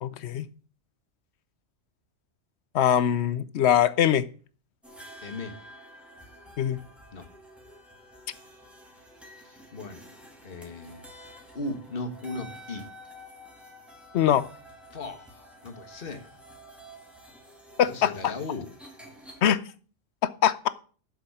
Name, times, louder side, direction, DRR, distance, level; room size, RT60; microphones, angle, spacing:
voice 1, 0.0-0.5 2.7-4.2 6.6-6.8 14.1-14.4 17.8-18.1 19.4-19.6 20.4-20.7, left 10 dB, 65° left, 16 dB, 0.9 m, -22 dB
sound 1, 4.8-19.4, equal, ahead, 2.1 m, -49 dB
voice 2, 5.2-5.5 7.1-7.3 9.3-10.1 10.4-11.1 11.5-12.9 14.9-16.3 17.9-18.7, left 2 dB, 50° left, 8 dB, 1.5 m, -37 dB
7.4 x 6.4 x 6.9 m, 0.40 s
omnidirectional pair, 1.3 m